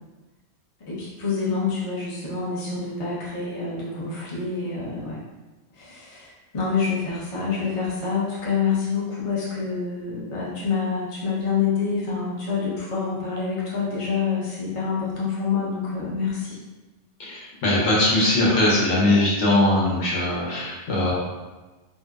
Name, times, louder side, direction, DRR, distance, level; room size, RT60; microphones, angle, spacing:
voice 1, 0.9-5.2 5.8-16.6, left 5 dB, 35° left, -7 dB, 0.5 m, -27 dB
voice 2, 17.2-21.1, left 1 dB, 75° left, -6 dB, 1.0 m, -21 dB
2.6 x 2.0 x 2.3 m, 1.2 s
omnidirectional pair, 1.2 m